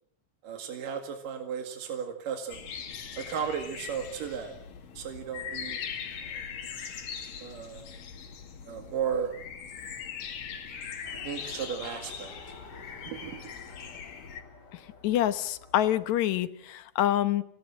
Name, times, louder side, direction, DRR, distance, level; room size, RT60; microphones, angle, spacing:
voice 1, 0.4-2.6 3.2-4.6 5.0-5.8 6.2-6.4 7.4-7.9 8.7-9.3 11.1-12.3 13.1-13.4, right 7 dB, 80° right, 5 dB, 3.7 m, -35 dB
sound 1, 2.5-14.4, left 7 dB, 85° left, 3.9 m, -41 dB
Race car auto racing, 11.0-16.2, left 4 dB, 35° left, 2.3 m, -50 dB
voice 2, 15.0-17.4, left 12 dB, 70° left, 12 dB, 2.2 m, -26 dB
28.0 x 18.0 x 7.6 m, 0.71 s
omnidirectional pair, 3.7 m